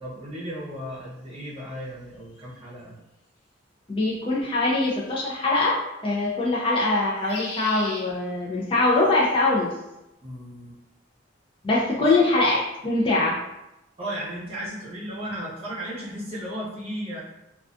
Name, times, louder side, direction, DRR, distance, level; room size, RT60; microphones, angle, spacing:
voice 1, 0.0-3.0 10.2-10.8 14.0-17.2, equal, 30° right, -7 dB, 0.7 m, -35 dB
sound 1, 2.3-2.4 4.9-5.3 7.0-8.0 9.0-9.4, left 1 dB, 80° left, 1.1 m, -37 dB
voice 2, 3.9-9.7 11.6-13.4, left 2 dB, 30° left, -4 dB, 0.4 m, -23 dB
2.3 x 2.3 x 2.5 m, 0.91 s
head